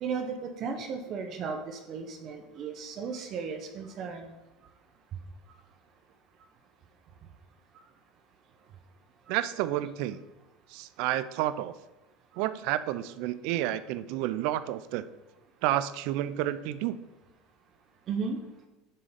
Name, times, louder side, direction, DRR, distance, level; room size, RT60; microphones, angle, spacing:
voice 1, 0.0-4.3 18.1-18.4, right 5 dB, 45° right, 5 dB, 0.8 m, -35 dB
voice 2, 9.3-10.2 10.7-11.7 12.4-15.0 15.6-17.0, right 13 dB, 65° right, 14 dB, 0.4 m, -30 dB
9.8 x 3.7 x 5.2 m, 1.0 s
supercardioid pair, 115°, 0 cm